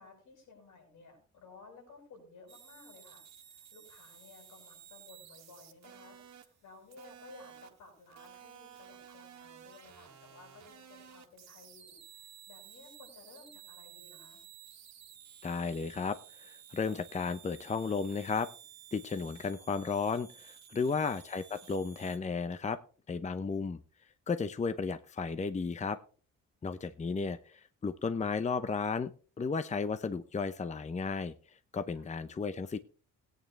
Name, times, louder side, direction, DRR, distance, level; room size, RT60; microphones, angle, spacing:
voice 1, 0.0-14.4 31.9-32.1, left 3 dB, 80° left, 1 dB, 6.9 m, -56 dB
sound 1, 2.5-22.2, right 9 dB, 60° right, 1.8 m, -54 dB
voice 2, 15.4-18.5 18.9-22.8 23.1-23.8 24.3-26.0 26.6-29.1 29.4-31.3 31.7-32.8, left 5 dB, 25° left, 12 dB, 0.7 m, -34 dB
17.5 x 9.2 x 3.2 m, 0.40 s
cardioid pair, 90°, 30 cm